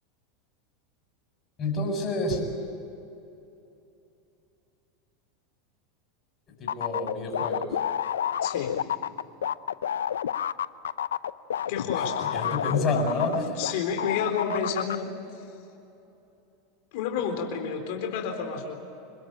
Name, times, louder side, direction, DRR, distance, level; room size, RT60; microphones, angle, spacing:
voice 1, 1.6-2.4 6.6-7.7 12.3-13.8, left 2 dB, 35° left, 3 dB, 7.5 m, -28 dB
sound 1, 6.7-13.7 14.0-15.0, left 9 dB, 85° left, 0.6 m, -29 dB
voice 2, 8.4-8.8 11.7-12.3 13.6-15.4 16.9-18.7, left 6 dB, 65° left, 3 dB, 4.0 m, -30 dB
27.0 x 20.5 x 9.1 m, 2.8 s
hypercardioid pair, 95°, 0 cm